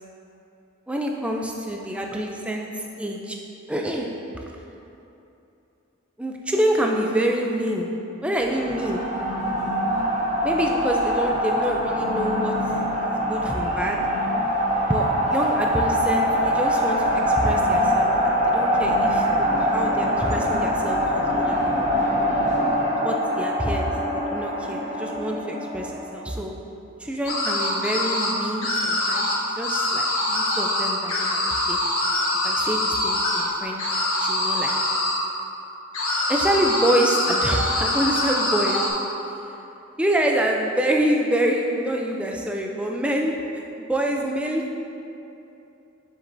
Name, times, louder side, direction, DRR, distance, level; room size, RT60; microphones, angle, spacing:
voice 1, 0.9-3.4 3.7-4.4 6.2-7.9 8.2-9.0 10.4-12.5 13.0-14.0 14.8-21.9 23.0-26.5 27.0-31.8 32.4-33.9 34.2-34.7 36.3-38.8 40.0-44.8, right 1 dB, 5° right, 0 dB, 0.4 m, -26 dB
sound 1, 8.4-26.1, equal, 35° right, 1.1 m, -23 dB
sound 2, 27.3-28.3 28.6-29.4 29.6-33.4 33.8-35.2 35.9-38.9, left 1 dB, 80° left, 1.3 m, -24 dB
7.2 x 6.8 x 2.6 m, 2.9 s
head